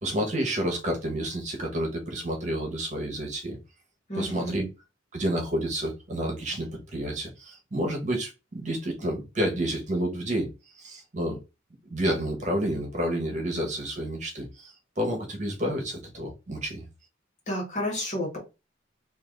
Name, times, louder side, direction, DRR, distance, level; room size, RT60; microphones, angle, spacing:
voice 1, 0.0-3.6 4.1-4.7 5.1-11.4 11.9-16.8, right 1 dB, 40° right, 1.1 m, -30 dB
voice 2, 4.1-4.7 17.5-18.4, left 1 dB, 40° left, 1.7 m, -31 dB
3.4 x 2.7 x 3.8 m
head